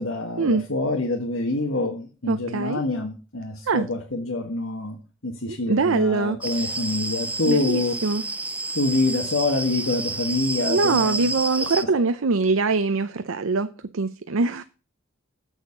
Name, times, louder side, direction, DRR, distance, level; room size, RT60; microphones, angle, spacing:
voice 1, 0.0-7.9 8.7-11.7 11.9-12.1, left 2 dB, 75° left, 1.5 m, -26 dB
voice 2, 2.3-2.8 3.7-3.9 5.5-6.4 7.5-8.2 10.7-14.6, right 4 dB, 75° right, 0.6 m, -23 dB
sound 1, 6.4-11.8, right 2 dB, 5° right, 0.4 m, -30 dB
8.1 x 6.3 x 6.6 m
head